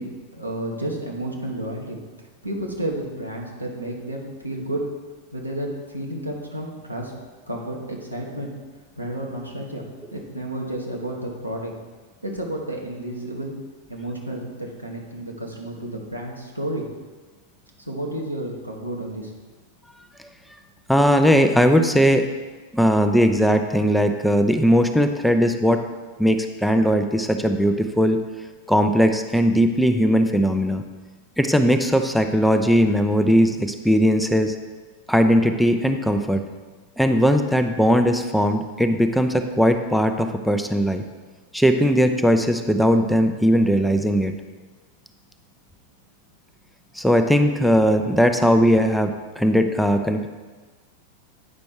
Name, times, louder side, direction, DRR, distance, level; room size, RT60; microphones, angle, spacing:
voice 1, 0.0-4.8 5.3-7.1 7.5-8.5 9.0-11.7 12.2-13.5 13.9-16.9 17.9-19.3, right 1 dB, 85° right, -1 dB, 1.3 m, -31 dB
voice 2, 20.9-22.3 22.7-25.8 26.2-28.2 28.7-30.8 31.4-34.5 35.1-36.4 37.0-41.0 41.5-44.3 46.9-50.3, equal, ahead, 6 dB, 0.5 m, -19 dB
8.8 x 5.2 x 4.6 m, 1.3 s
figure-of-eight pair, 90°, 0 cm